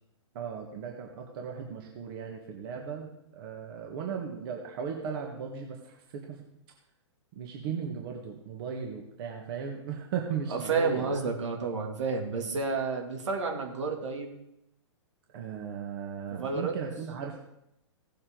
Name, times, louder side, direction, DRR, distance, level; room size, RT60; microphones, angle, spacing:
voice 1, 0.3-6.4 7.3-11.2 15.3-17.4, right 7 dB, 50° right, 1 dB, 1.7 m, -37 dB
voice 2, 10.5-14.3 16.3-16.8, right 4 dB, 75° right, 2 dB, 2.6 m, -30 dB
17.0 x 7.8 x 3.9 m, 0.80 s
hypercardioid pair, 130°, 15 cm